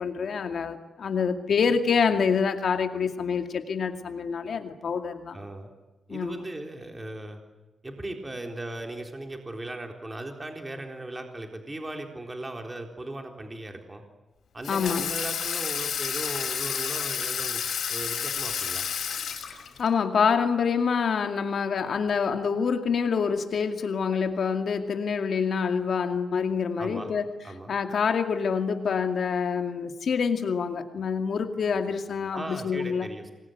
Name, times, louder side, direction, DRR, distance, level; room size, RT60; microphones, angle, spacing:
voice 1, 0.0-5.4 6.1-6.4 14.7-15.0 19.5-27.3 27.7-33.1, left 6 dB, 65° left, 6 dB, 2.3 m, -26 dB
voice 2, 5.3-5.7 6.1-7.4 7.8-14.0 14.5-18.9 26.8-27.1 27.4-27.7 32.3-33.3, right 1 dB, 20° right, 3 dB, 3.9 m, -38 dB
Water tap faucet / Sink (filling or washing), 14.6-19.9, left 7 dB, 80° left, 5.3 m, -30 dB
27.5 x 22.0 x 9.5 m, 1.1 s
cardioid pair, 110°, 0 cm